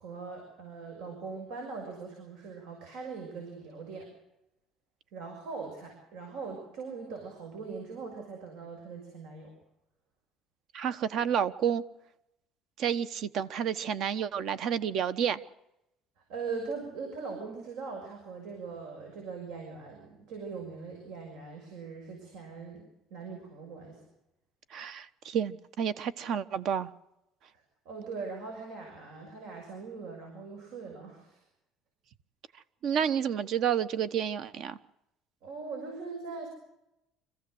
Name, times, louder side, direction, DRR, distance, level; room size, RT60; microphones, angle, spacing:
voice 1, 0.0-4.1 5.1-9.5 16.2-22.8 23.1-24.0 27.5-31.4 35.4-36.5, right 4 dB, 80° right, 6.4 m, -41 dB
voice 2, 10.7-11.8 12.8-15.4 24.7-26.9 32.8-34.8, right 8 dB, 55° right, 1.1 m, -30 dB
26.0 x 15.5 x 7.9 m
cardioid pair, 140°, 0 cm